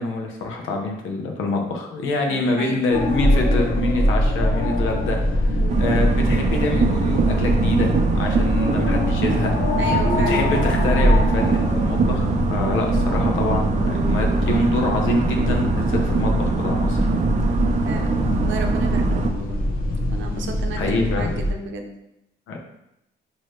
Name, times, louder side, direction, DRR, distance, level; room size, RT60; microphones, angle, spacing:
voice 1, 0.0-5.2 5.8-9.5 9.9-17.1 20.8-21.3 22.5-22.6, left 2 dB, 85° left, 2 dB, 0.8 m, -25 dB
voice 2, 2.2-2.7 5.5-5.8 9.8-10.4 17.9-19.6 20.1-21.9, right 4 dB, 70° right, 4 dB, 0.7 m, -33 dB
sound 1, 2.9-21.5, left 1 dB, 45° left, 0.9 m, -23 dB
sound 2, 5.7-19.3, right 5 dB, 35° right, 0.4 m, -23 dB
4.7 x 2.9 x 3.1 m, 0.85 s
cardioid pair, 90°, 20 cm